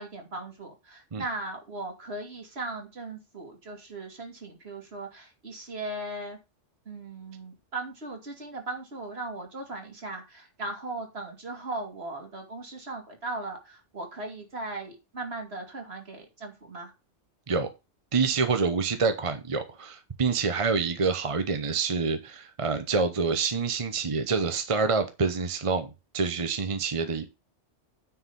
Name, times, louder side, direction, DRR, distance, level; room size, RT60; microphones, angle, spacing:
voice 1, 0.0-6.4 6.9-16.9, right 2 dB, 60° right, 2.8 m, -38 dB
voice 2, 18.1-27.3, right 4 dB, 30° right, 0.8 m, -27 dB
9.6 x 4.7 x 5.5 m
omnidirectional pair, 1.2 m